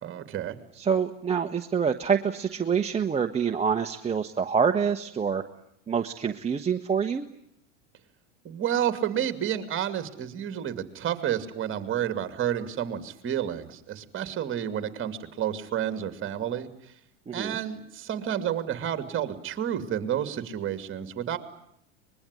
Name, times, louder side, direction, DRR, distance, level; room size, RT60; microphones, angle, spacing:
voice 1, 0.0-0.6 8.4-16.7 17.3-21.4, right 10 dB, 30° right, 10 dB, 2.7 m, -30 dB
voice 2, 0.8-5.4 5.9-7.3 17.3-17.6, right 6 dB, 15° right, 4 dB, 1.1 m, -26 dB
24.5 x 21.5 x 9.8 m, 0.74 s
hypercardioid pair, 105°, 38 cm